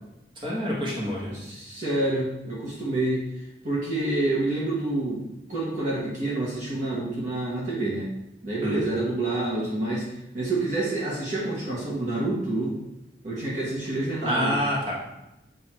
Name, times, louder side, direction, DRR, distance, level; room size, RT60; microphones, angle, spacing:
voice 1, 0.4-1.3 8.6-8.9 14.2-14.9, equal, 25° right, -4 dB, 1.5 m, -27 dB
voice 2, 1.3-3.2 3.6-5.2 5.5-8.1 8.4-10.0 10.3-12.7 13.2-14.5, right 2 dB, 45° right, -6 dB, 1.3 m, -28 dB
8.0 x 2.9 x 4.3 m, 0.91 s
head